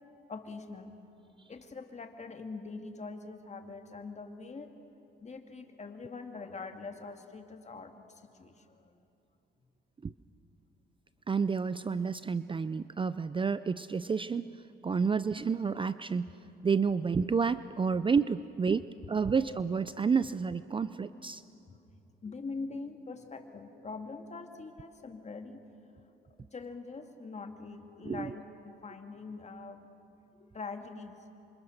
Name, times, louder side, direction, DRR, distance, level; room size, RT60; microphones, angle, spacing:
voice 1, 0.3-1.0 1.5-4.8 5.2-8.9 21.7-21.8 22.2-25.6 26.4-29.9 30.4-31.2, left 4 dB, 35° left, 5 dB, 2.2 m, -43 dB
voice 2, 11.3-16.3 16.6-18.8 19.1-21.4 28.0-28.4, right 5 dB, 25° right, 14 dB, 0.5 m, -30 dB
27.5 x 25.0 x 6.6 m, 2.9 s
cardioid pair, 90°, 20 cm